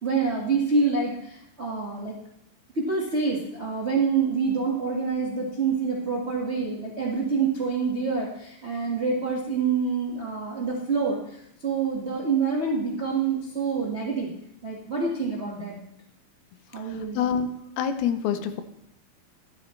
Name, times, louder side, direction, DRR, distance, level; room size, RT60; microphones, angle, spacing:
voice 1, 0.0-2.1 2.7-14.3 14.6-15.8 16.7-17.2, right 4 dB, 65° right, -4 dB, 0.6 m, -27 dB
voice 2, 17.2-17.5 17.8-18.6, left 8 dB, 80° left, 9 dB, 2.7 m, -25 dB
13.0 x 12.0 x 3.2 m, 0.76 s
omnidirectional pair, 4.4 m